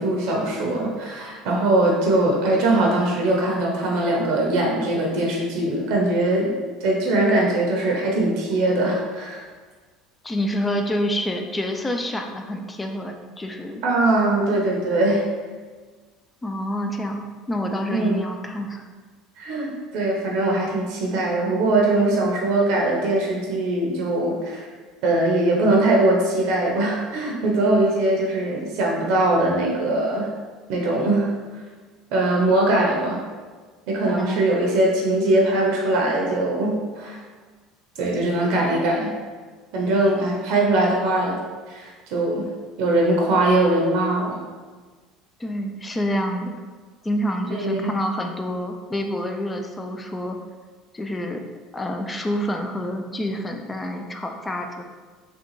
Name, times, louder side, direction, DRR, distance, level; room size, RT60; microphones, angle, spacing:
voice 1, 0.0-6.5 6.8-9.4 13.8-15.2 17.9-18.2 19.4-24.7 25.0-30.3 30.7-31.3 32.1-33.2 33.9-37.2 38.0-39.1 39.7-41.4 41.7-42.5 42.8-44.4 47.5-47.9, right 2 dB, 70° right, -1 dB, 0.6 m, -21 dB
voice 2, 10.2-13.8 16.4-18.9 34.0-34.4 45.4-46.5 47.0-50.4 50.9-51.4 51.7-54.8, equal, 15° left, 4 dB, 0.3 m, -27 dB
3.7 x 2.2 x 3.0 m, 1.4 s
supercardioid pair, 110°, 0 cm